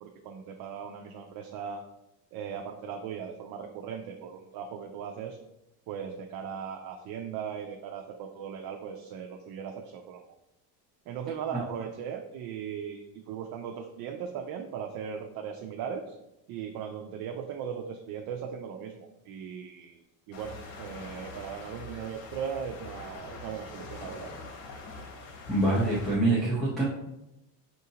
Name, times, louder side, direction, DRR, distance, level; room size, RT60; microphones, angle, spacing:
voice 1, 0.0-1.8 2.3-5.4 5.9-10.2 11.1-13.0 13.3-16.1 16.5-20.0 20.3-24.3, right 7 dB, 55° right, 3 dB, 0.5 m, -38 dB
sound 1, 20.3-26.2, left 3 dB, 80° left, 1.0 m, -44 dB
voice 2, 25.5-26.8, right 2 dB, ahead, -7 dB, 0.6 m, -25 dB
6.4 x 2.7 x 2.7 m, 0.89 s
cardioid pair, 150°, 43 cm